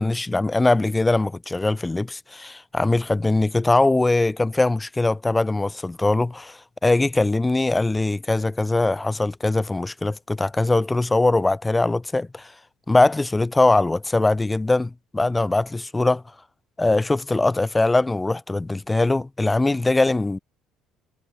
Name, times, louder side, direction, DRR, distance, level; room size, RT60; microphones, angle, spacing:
voice 1, 0.0-12.5 12.9-16.2 16.8-20.4, left 2 dB, 10° left, 0.9 m, -21 dB
cardioid pair, 175°, 0 cm